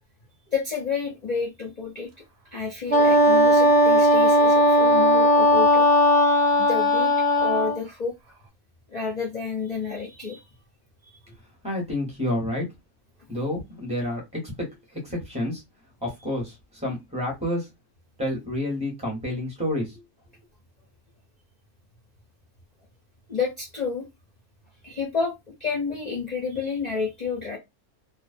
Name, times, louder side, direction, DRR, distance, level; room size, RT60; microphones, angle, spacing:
voice 1, 0.5-2.1 2.5-5.9 6.5-8.1 8.9-10.4 23.3-24.1 24.8-25.3 25.6-27.6, left 5 dB, 55° left, -2 dB, 0.4 m, -30 dB
Wind instrument woodwind instrument, 2.9-7.8, left 1 dB, 60° right, 0.8 m, -17 dB
voice 2, 11.6-12.6 13.3-14.7 14.9-15.6 16.0-17.7 18.2-20.0, left 1 dB, 5° right, 0 dB, 0.8 m, -29 dB
2.4 x 2.1 x 2.4 m, 0.20 s
omnidirectional pair, 1.5 m